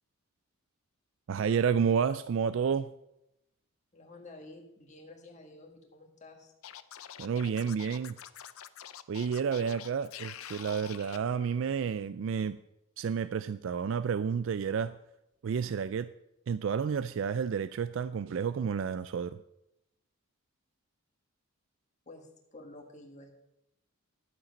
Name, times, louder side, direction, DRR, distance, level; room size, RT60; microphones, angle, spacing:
voice 1, 1.3-2.9 7.2-8.2 9.1-12.6 13.0-15.0 15.4-16.1 16.5-19.4, right 6 dB, 65° right, 14 dB, 0.3 m, -30 dB
voice 2, 3.9-6.5 22.0-23.3, left 2 dB, 35° left, 2 dB, 1.6 m, -51 dB
Scratching (performance technique), 6.6-11.2, left 10 dB, 85° left, 0.5 m, -46 dB
11.5 x 7.6 x 5.2 m, 0.84 s
head